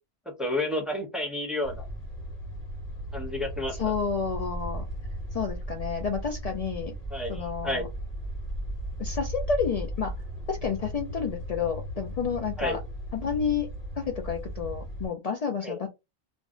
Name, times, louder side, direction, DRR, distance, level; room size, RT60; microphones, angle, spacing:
voice 1, 0.4-1.8 3.1-3.9 7.1-7.9 12.6-12.8 15.6-15.8, left 1 dB, ahead, 1 dB, 0.6 m, -31 dB
sound 1, 1.6-15.1, right 1 dB, 35° left, 1.1 m, -36 dB
voice 2, 3.8-4.8 5.3-6.9 7.3-7.9 9.0-10.1 10.5-12.8 13.1-13.7 14.0-15.9, left 6 dB, 85° left, 3 dB, 0.3 m, -30 dB
2.5 x 2.0 x 3.6 m, 0.23 s
omnidirectional pair, 1.2 m